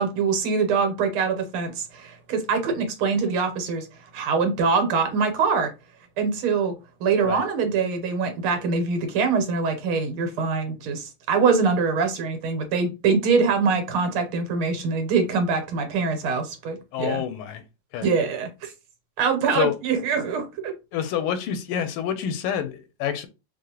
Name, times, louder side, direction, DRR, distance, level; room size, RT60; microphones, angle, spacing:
voice 1, 0.0-3.9 4.1-5.7 6.2-6.7 7.0-17.2 18.0-18.7 19.2-20.7, right 5 dB, 85° right, 1.7 m, -24 dB
voice 2, 16.9-17.6 17.9-18.1 19.6-19.7 20.9-23.3, left 9 dB, 85° left, 1.5 m, -27 dB
4.6 x 2.4 x 2.8 m
omnidirectional pair, 2.3 m